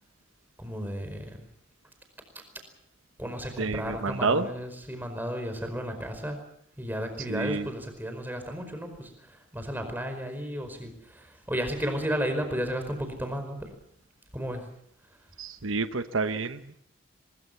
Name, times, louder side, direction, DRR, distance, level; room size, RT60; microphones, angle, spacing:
voice 1, 0.6-1.4 3.2-6.4 6.8-13.6 14.3-14.6, equal, 10° right, 6 dB, 4.8 m, -33 dB
voice 2, 3.6-4.5 7.3-7.7 15.4-16.8, right 4 dB, 85° right, 10 dB, 1.1 m, -29 dB
23.0 x 22.0 x 7.1 m, 0.69 s
head